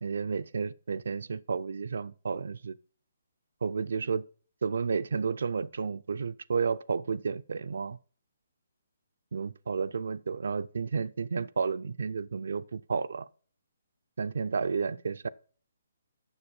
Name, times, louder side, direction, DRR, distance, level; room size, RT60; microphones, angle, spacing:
voice 1, 0.0-2.8 3.6-4.3 4.6-8.0 9.3-13.3 14.2-15.3, right 5 dB, 65° right, 0.4 m, -31 dB
7.0 x 6.4 x 5.3 m
figure-of-eight pair, 135°, 0 cm